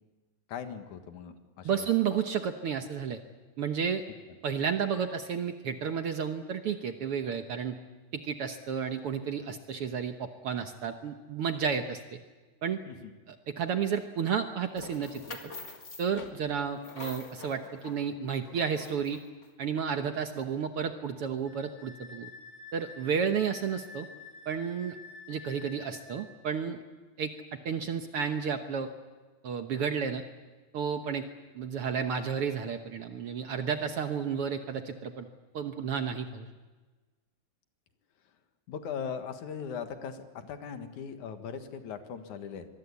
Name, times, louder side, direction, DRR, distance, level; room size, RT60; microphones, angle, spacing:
voice 1, 0.5-1.9 12.9-13.1 38.7-42.7, left 7 dB, 75° left, 7 dB, 2.9 m, -39 dB
voice 2, 1.6-3.2 3.6-4.0 4.4-7.8 8.1-12.2 12.6-12.8 13.3-15.5 16.0-19.2 19.6-22.3 22.7-24.1 24.5-25.0 25.3-26.8 27.2-28.9 29.4-30.2 30.7-31.2 31.5-35.3 35.5-36.5, right 7 dB, 60° right, 7 dB, 1.7 m, -32 dB
sound 1, 14.8-19.5, left 3 dB, 30° left, 1.6 m, -46 dB
Wind instrument woodwind instrument, 21.4-26.2, left 4 dB, 40° right, 8.1 m, -49 dB
24.5 x 22.0 x 8.4 m, 1.3 s
omnidirectional pair, 3.5 m